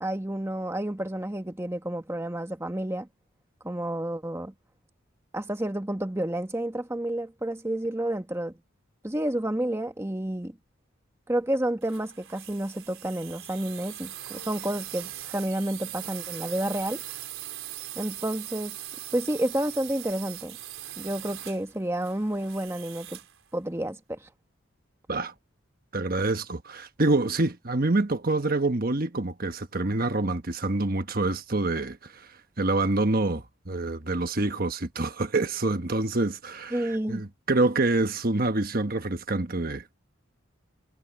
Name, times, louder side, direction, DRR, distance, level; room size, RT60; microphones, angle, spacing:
voice 1, 0.0-3.1 3.6-4.5 5.3-8.5 9.0-10.6 11.3-17.0 18.0-18.8 19.1-20.6 21.0-23.2 23.5-24.3 36.7-37.2, right 1 dB, 15° right, 1.1 m, -30 dB
sound 1, 11.8-23.4, right 13 dB, 80° right, 4.2 m, -41 dB
voice 2, 25.9-32.3 32.6-39.8, right 2 dB, 45° right, 1.3 m, -26 dB
head